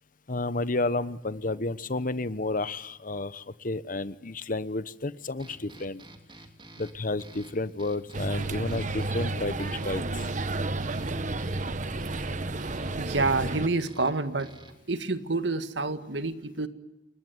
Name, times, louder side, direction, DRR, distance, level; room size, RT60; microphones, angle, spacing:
voice 1, 0.3-6.0 6.8-10.2, left 2 dB, 50° left, 15 dB, 1.1 m, -31 dB
sound 1, 5.4-14.9, right 2 dB, 30° right, 3.1 m, -51 dB
sound 2, 8.1-13.7, right 2 dB, 45° right, 1.3 m, -31 dB
voice 2, 13.0-14.5 14.9-16.7, right 3 dB, 85° right, 10 dB, 1.9 m, -28 dB
29.0 x 22.0 x 9.4 m, 0.91 s
head